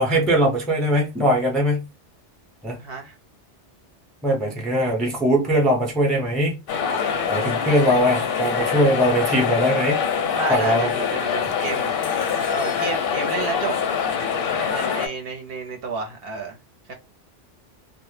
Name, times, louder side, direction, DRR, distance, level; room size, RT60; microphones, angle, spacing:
voice 1, 0.0-1.9 2.6-2.8 4.2-6.6 7.3-10.0 10.5-10.9, equal, ahead, 0.4 m, -21 dB
voice 2, 2.8-3.1 7.0-7.8 10.4-11.9 12.5-13.7 14.5-16.6 16.9-17.0, right 4 dB, 60° right, 0.7 m, -31 dB
sound 1, 6.7-15.1, left 7 dB, 60° left, 0.6 m, -24 dB
2.1 x 2.0 x 3.1 m
omnidirectional pair, 1.2 m